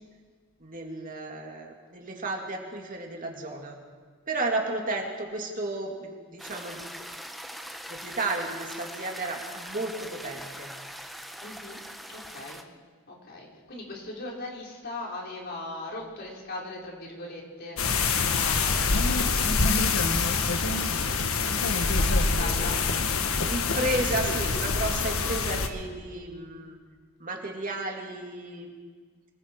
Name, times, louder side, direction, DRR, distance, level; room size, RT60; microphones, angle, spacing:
voice 1, 0.6-3.8 4.3-6.8 7.9-10.7 23.4-26.8 27.2-28.7, right 2 dB, 40° right, 1 dB, 2.7 m, -33 dB
sound 1, 6.4-12.6, equal, ahead, 0.9 m, -42 dB
voice 2, 11.4-11.8 12.1-12.6 13.1-17.8 18.3-19.8 20.6-23.1 23.4-23.8, left 2 dB, 50° left, -2 dB, 4.8 m, -40 dB
sound 2, 17.8-25.7, left 4 dB, 80° left, 1.4 m, -25 dB
26.5 x 21.0 x 4.8 m, 1.5 s
head